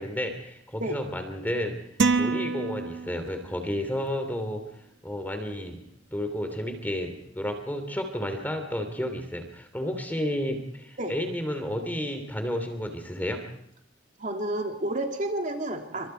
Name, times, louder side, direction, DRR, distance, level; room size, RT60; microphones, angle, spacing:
voice 1, 0.0-1.7 2.2-4.6 5.0-5.8 6.1-13.4, equal, 10° left, 6 dB, 3.0 m, -31 dB
sound 1, 2.0-3.5, right 4 dB, 75° right, 1.3 m, -26 dB
voice 2, 14.2-16.1, right 1 dB, 40° right, 3 dB, 3.0 m, -30 dB
29.0 x 25.5 x 4.6 m, 0.74 s
head